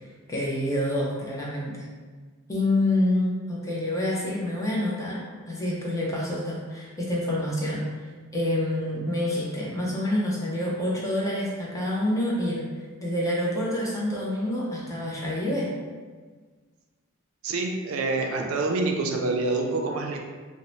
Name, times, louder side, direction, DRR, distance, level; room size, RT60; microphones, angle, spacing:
voice 1, 0.3-1.8 2.5-5.2 5.5-8.0 8.3-12.7 13.0-15.7, left 1 dB, 15° left, -5 dB, 0.5 m, -27 dB
voice 2, 17.4-20.2, right 3 dB, 75° right, 2 dB, 0.4 m, -26 dB
2.6 x 2.0 x 3.0 m, 1.4 s
head